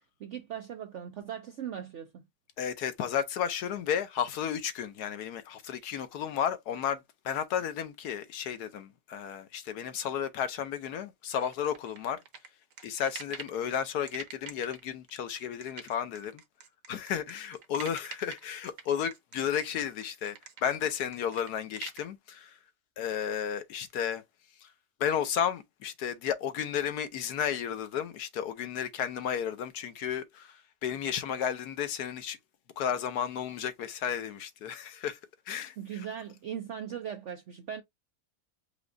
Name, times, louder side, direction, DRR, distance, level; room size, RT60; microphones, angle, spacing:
voice 1, 0.2-2.2 35.8-37.8, right 9 dB, 70° right, 0.7 m, -39 dB
voice 2, 2.6-12.2 12.8-16.4 16.9-22.6 23.0-24.2 24.6-24.7 25.0-32.4 32.8-35.2 35.5-36.0, left 8 dB, 70° left, 1.2 m, -33 dB
sound 1, 11.4-13.6 14.1-22.0, right 6 dB, 55° right, 1.2 m, -46 dB
5.1 x 2.3 x 3.8 m
omnidirectional pair, 1.9 m